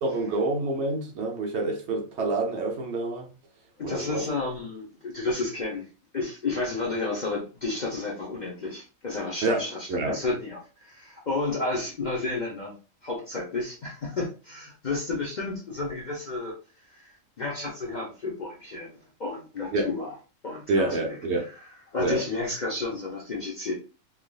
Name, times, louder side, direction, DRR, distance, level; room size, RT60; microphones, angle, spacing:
voice 1, 0.0-3.3 3.8-4.2 9.4-10.2 19.7-19.9 20.7-21.5 22.0-22.2, right 2 dB, 60° right, 0.8 m, -27 dB
voice 2, 3.8-5.9 6.1-12.7 13.0-16.5 16.9-20.1 20.4-21.7 21.9-23.7, left 3 dB, 45° left, 0.6 m, -32 dB
3.4 x 2.4 x 2.2 m
omnidirectional pair, 1.4 m